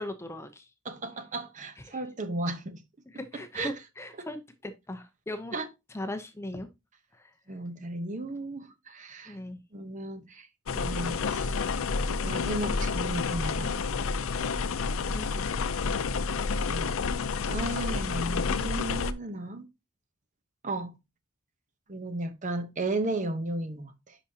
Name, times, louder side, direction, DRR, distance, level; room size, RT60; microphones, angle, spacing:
voice 1, 0.0-0.7 1.9-2.0 3.1-5.6 5.9-6.7 7.2-7.3 9.3-9.6 15.1-15.5 15.8-16.0, left 1 dB, 15° left, 0.7 m, -39 dB
voice 2, 0.8-2.8 3.3-3.7 4.2-4.3 5.5-5.7 7.5-9.4 9.7-10.5 10.8-11.5 12.2-13.7 16.6-17.0 17.5-19.7 20.6-20.9 21.9-24.2, right 2 dB, 35° right, 0.9 m, -34 dB
sound 1, 10.7-19.1, left 4 dB, 85° left, 0.5 m, -29 dB
10.5 x 5.0 x 2.8 m
head